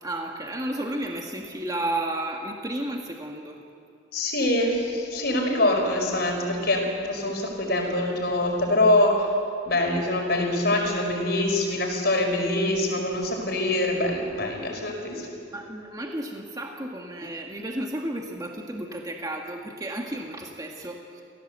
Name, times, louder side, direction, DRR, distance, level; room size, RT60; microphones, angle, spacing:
voice 1, 0.0-3.6 15.5-21.2, right 1 dB, 20° right, 1 dB, 1.6 m, -32 dB
voice 2, 4.1-9.3 9.7-15.3, left 1 dB, 60° left, 2 dB, 5.1 m, -24 dB
27.5 x 16.5 x 8.0 m, 2.4 s
head